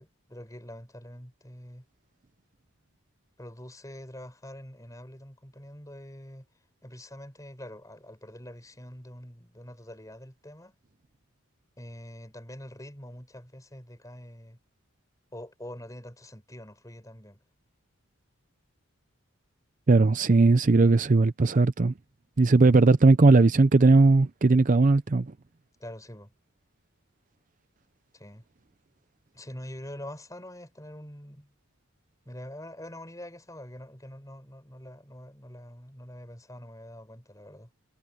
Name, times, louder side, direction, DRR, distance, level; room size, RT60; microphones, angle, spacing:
voice 1, 0.0-1.8 3.4-6.5 6.8-10.7 11.8-14.6 15.3-17.4 25.8-26.3 28.1-28.4 29.3-31.5 32.3-37.7, left 1 dB, 15° left, 5.6 m, -45 dB
voice 2, 19.9-21.9 22.4-25.3, right 3 dB, 35° right, 0.5 m, -19 dB
head